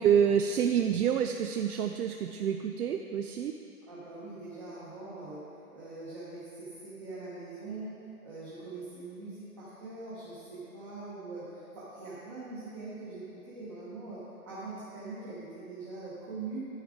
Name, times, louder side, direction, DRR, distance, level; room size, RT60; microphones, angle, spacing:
voice 1, 0.0-3.5, right 8 dB, 75° right, 6 dB, 0.5 m, -27 dB
voice 2, 3.9-5.4 5.7-7.9 8.2-16.7, right 3 dB, 20° right, -10 dB, 1.0 m, -42 dB
9.9 x 7.9 x 3.7 m, 2.7 s
hypercardioid pair, 165°, 45 cm